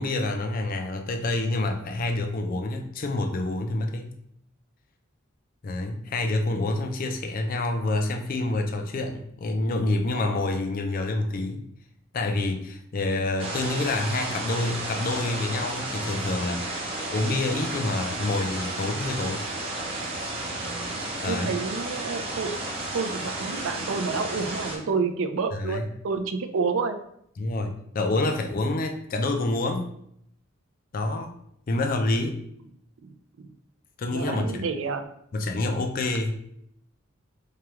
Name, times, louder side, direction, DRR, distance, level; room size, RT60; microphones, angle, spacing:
voice 1, 0.0-4.1 5.6-11.6 12.1-19.4 21.2-21.6 25.5-25.9 27.4-29.9 30.9-31.3 31.7-32.4 34.0-34.6 35.3-36.4, left 2 dB, 45° left, 5 dB, 0.4 m, -27 dB
sound 1, 13.4-24.8, right 2 dB, 30° right, 0.8 m, -32 dB
voice 2, 21.3-22.6 22.9-27.0 33.0-33.5 34.1-35.1, right 4 dB, 75° right, 9 dB, 0.4 m, -29 dB
4.7 x 2.3 x 2.9 m, 0.71 s
head